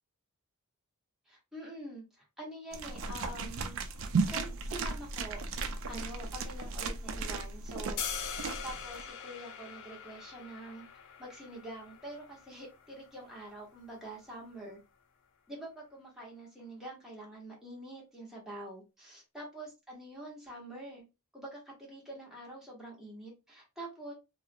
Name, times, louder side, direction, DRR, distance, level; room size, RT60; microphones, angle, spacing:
voice 1, 1.3-3.8 4.3-5.4 5.9-8.0 8.6-10.8 11.2-14.8 15.5-21.0 21.3-24.1, right 1 dB, ahead, -4 dB, 1.0 m, -46 dB
sound 1, 2.7-9.0, right 4 dB, 60° right, 0.4 m, -35 dB
sound 2, 8.0-14.1, left 7 dB, 55° left, 0.5 m, -43 dB
2.3 x 2.0 x 2.7 m, 0.26 s
head